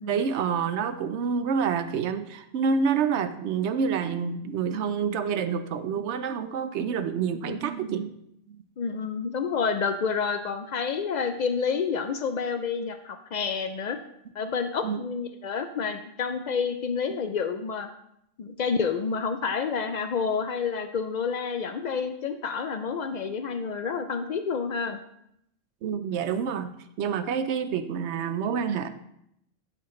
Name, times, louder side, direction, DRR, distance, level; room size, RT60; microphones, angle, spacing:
voice 1, 0.0-8.1 8.5-8.6 14.8-15.0 25.8-28.9, right 6 dB, 70° right, 10 dB, 0.8 m, -28 dB
voice 2, 8.8-14.0 14.4-17.9 18.4-25.0, left 5 dB, 80° left, 8 dB, 0.4 m, -29 dB
12.5 x 4.4 x 3.1 m, 0.76 s
omnidirectional pair, 1.3 m